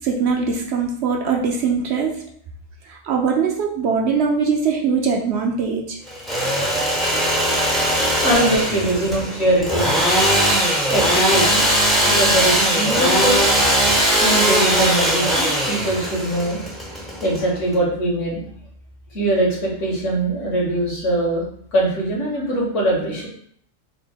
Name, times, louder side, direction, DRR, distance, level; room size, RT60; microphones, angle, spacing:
voice 1, 0.0-2.1 2.9-6.0, right 5 dB, 65° right, 1 dB, 0.8 m, -21 dB
Engine / Sawing, 6.1-17.7, equal, ahead, 0.5 m, -19 dB
voice 2, 8.2-10.4 10.9-13.7 14.2-16.7 17.1-18.4 19.1-21.4 21.7-23.3, right 1 dB, 70° left, -4 dB, 1.6 m, -22 dB
4.0 x 2.1 x 3.5 m, 0.62 s
omnidirectional pair, 1.3 m